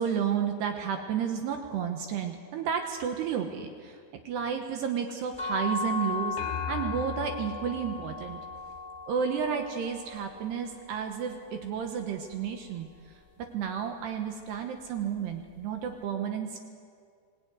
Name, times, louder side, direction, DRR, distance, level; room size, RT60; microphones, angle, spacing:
voice 1, 0.0-4.0 4.3-6.4 6.7-8.4 9.1-13.2 13.5-16.6, right 7 dB, 70° right, 5 dB, 2.9 m, -32 dB
sound 1, 5.4-11.2, left 3 dB, 10° right, 4.1 m, -36 dB
sound 2, 6.4-9.0, left 7 dB, 80° left, 3.3 m, -39 dB
24.5 x 17.5 x 9.5 m, 2.1 s
omnidirectional pair, 5.7 m